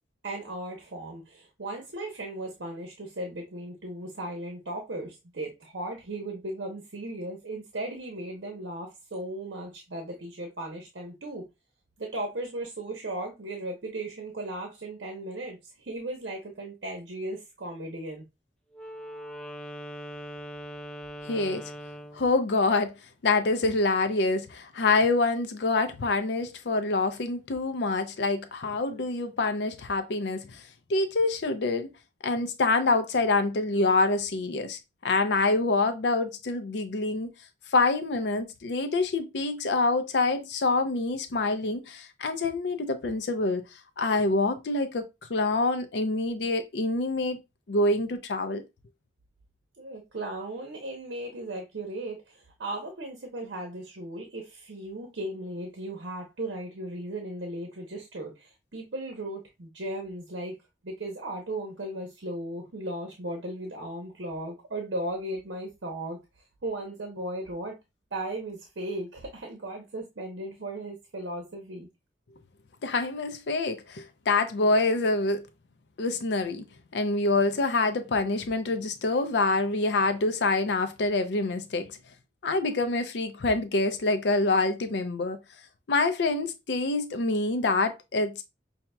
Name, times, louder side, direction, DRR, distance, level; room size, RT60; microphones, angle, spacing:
voice 1, 0.2-11.4 12.0-18.3 49.8-60.6 60.8-66.2 66.6-67.7 68.1-71.9, right 1 dB, 80° right, 0.8 m, -36 dB
Wind instrument woodwind instrument, 18.7-22.3, equal, 5° left, 0.4 m, -41 dB
voice 2, 21.2-21.7 22.1-22.9 23.2-30.6 30.9-31.9 32.2-37.3 37.7-43.6 44.0-45.0 45.3-47.4 47.7-48.6 72.8-75.4 76.0-76.6 76.9-81.9 82.4-85.4 85.9-88.4, left 3 dB, 70° left, 0.5 m, -26 dB
5.7 x 2.7 x 2.2 m
head